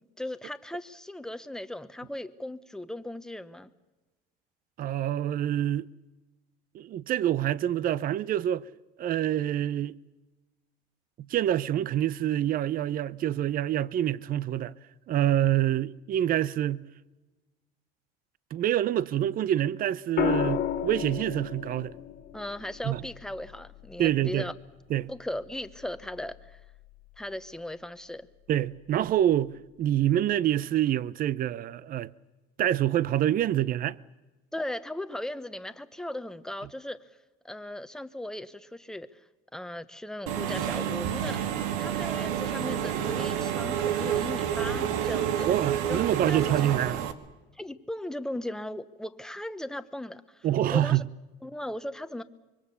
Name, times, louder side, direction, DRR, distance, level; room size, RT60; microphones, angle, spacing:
voice 1, 0.2-3.7 22.3-24.5 25.1-26.6 27.2-28.3 34.5-37.0 37.4-39.1 39.5-41.4 41.8-45.5 45.9-46.0 46.3-46.5 47.6-50.5 50.7-51.0 51.4-52.2, left 1 dB, 5° left, 1.0 m, -37 dB
voice 2, 4.8-5.9 6.7-8.7 9.0-9.9 11.3-14.7 15.1-16.8 18.5-21.9 22.8-23.0 24.0-24.5 24.9-25.1 28.5-32.1 32.6-34.0 45.5-47.0 50.4-51.0, right 11 dB, 45° right, 0.7 m, -26 dB
sound 1, 20.2-24.3 26.0-26.4, left 10 dB, 50° left, 1.9 m, -33 dB
Engine / Mechanisms, 40.3-47.1, right 9 dB, 85° right, 1.8 m, -29 dB
25.0 x 23.0 x 6.9 m
cardioid pair, 115°, 21 cm